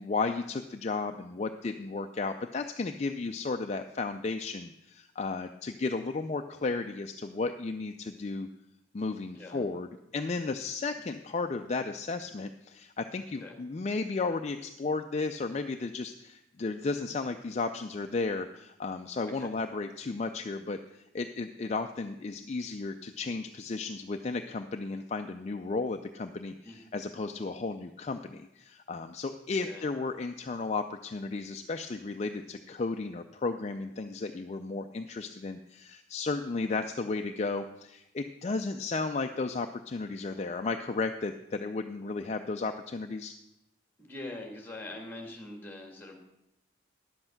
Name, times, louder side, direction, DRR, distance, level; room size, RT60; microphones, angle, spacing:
voice 1, 0.0-8.5 8.9-43.3, left 3 dB, 35° left, 6 dB, 0.4 m, -34 dB
voice 2, 29.5-29.8 44.0-46.2, left 2 dB, 10° left, 2 dB, 1.8 m, -43 dB
11.0 x 7.8 x 5.8 m, 0.85 s
head